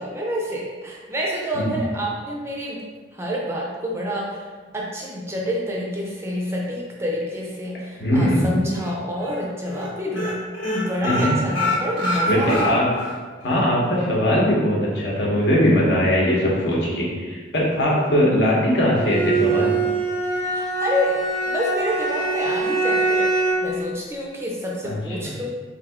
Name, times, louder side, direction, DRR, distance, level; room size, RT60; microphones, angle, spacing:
voice 1, 0.0-2.8 3.1-4.5 4.7-12.8 20.5-23.3 23.6-25.5, equal, 15° right, -3 dB, 0.4 m, -28 dB
voice 2, 8.0-8.5 11.0-11.4 12.3-12.8 13.4-19.7 24.8-25.3, equal, 60° left, -5 dB, 1.0 m, -20 dB
sound 1, 8.3-8.9 9.2-9.4 9.7-9.9 10.1-13.1 13.5-13.6 14.0-14.1, left 2 dB, 90° left, 1.2 m, -26 dB
Bowed string instrument, 18.9-23.8, right 3 dB, 35° left, 0.6 m, -23 dB
3.5 x 2.6 x 3.4 m, 1.4 s
head